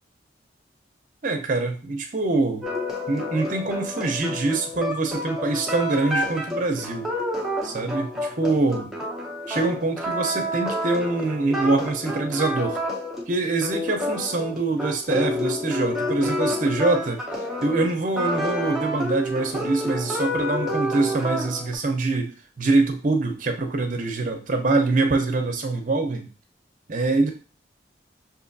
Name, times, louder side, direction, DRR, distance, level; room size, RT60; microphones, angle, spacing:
voice 1, 1.2-2.7 3.1-7.1 7.6-8.9 9.5-12.8 13.3-17.2 17.6-26.3 26.9-27.3, right 3 dB, 45° right, 5 dB, 0.6 m, -24 dB
sound 1, 2.6-21.7, left 1 dB, ahead, 0.6 m, -29 dB
6.0 x 2.6 x 2.6 m, 0.36 s
head